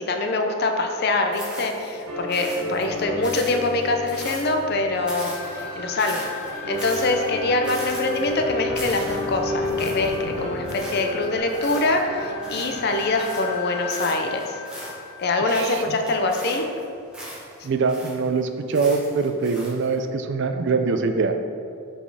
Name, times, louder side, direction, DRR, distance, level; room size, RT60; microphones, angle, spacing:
voice 1, 0.0-6.3 6.5-14.4 15.2-16.7, left 2 dB, 45° left, 4 dB, 0.5 m, -24 dB
sound 1, 1.3-2.0 2.3-4.7 5.1-13.6 13.9-15.2 15.5-18.3 18.7-19.9, equal, 5° right, 1.1 m, -39 dB
sound 2, 1.7-11.4, left 3 dB, 75° right, 1.2 m, -32 dB
sound 3, 4.9-16.1, left 2 dB, 30° left, 1.2 m, -36 dB
voice 2, 15.5-16.0 17.6-21.3, right 4 dB, 55° right, 7 dB, 0.4 m, -23 dB
5.6 x 4.2 x 4.7 m, 2.4 s
head